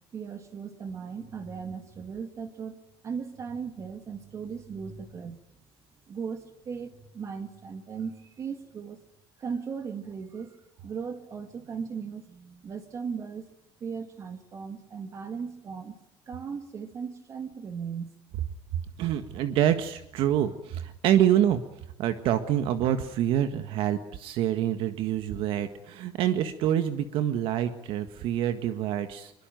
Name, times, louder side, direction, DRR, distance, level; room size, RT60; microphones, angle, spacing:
voice 1, 0.1-5.4 6.1-9.0 9.4-13.5 13.8-16.0 16.3-18.1, right 6 dB, 30° right, 8 dB, 2.2 m, -37 dB
voice 2, 18.7-21.6 22.0-29.3, right 11 dB, 60° right, 9 dB, 1.7 m, -26 dB
25.0 x 23.0 x 9.3 m, 0.82 s
cardioid pair, 175°, 10 cm